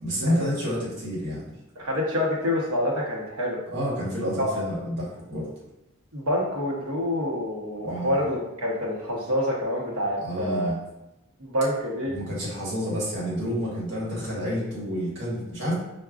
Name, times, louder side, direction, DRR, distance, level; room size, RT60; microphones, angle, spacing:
voice 1, 0.0-1.5 3.7-5.5 7.8-8.2 10.2-10.8 12.0-15.7, equal, 55° right, -6 dB, 1.2 m, -29 dB
voice 2, 1.8-3.6 4.4-4.5 6.1-10.7 11.4-12.2, left 1 dB, 90° right, -2 dB, 0.9 m, -27 dB
4.6 x 2.2 x 2.4 m, 0.92 s
head